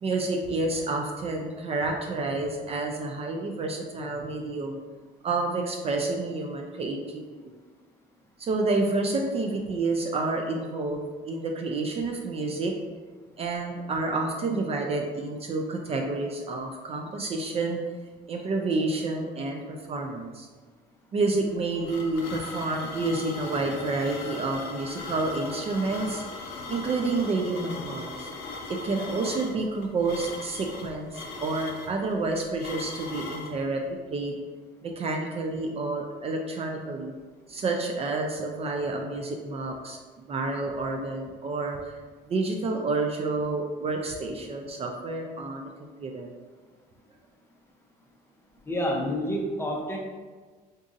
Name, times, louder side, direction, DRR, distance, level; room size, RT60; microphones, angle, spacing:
voice 1, 0.0-4.8 5.2-7.6 8.4-12.7 13.4-17.8 18.3-20.5 21.1-26.2 26.7-28.3 28.7-34.4 34.8-37.1 37.5-41.8 42.3-46.3, right 3 dB, 35° right, 2 dB, 0.4 m, -29 dB
sound 1, 21.4-33.6, left 3 dB, 85° left, 0.6 m, -39 dB
voice 2, 48.7-50.0, equal, 15° left, -1 dB, 0.6 m, -28 dB
3.9 x 2.5 x 2.5 m, 1.4 s
cardioid pair, 110°, 17 cm